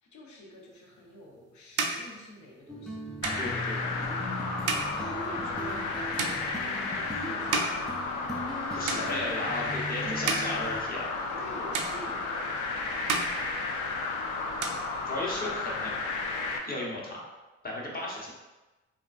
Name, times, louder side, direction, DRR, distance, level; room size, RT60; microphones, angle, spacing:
voice 1, 0.0-3.0 4.8-7.7 11.3-12.7, equal, 70° left, -1 dB, 0.8 m, -47 dB
sound 1, 0.9-8.6 8.8-9.6 10.0-11.5 11.7-12.6 12.9-14.2 14.4-15.5, right 4 dB, 80° right, 0.5 m, -35 dB
sound 2, 2.7-10.8, equal, ahead, 0.4 m, -39 dB
sound 3, 3.2-16.6, left 3 dB, 85° left, 0.5 m, -33 dB
voice 2, 3.4-3.9 8.7-11.1 15.0-15.9 16.6-17.2 17.6-18.3, left 1 dB, 30° left, -3 dB, 0.9 m, -35 dB
3.6 x 2.4 x 2.3 m, 1.1 s
cardioid pair, 90°, 30 cm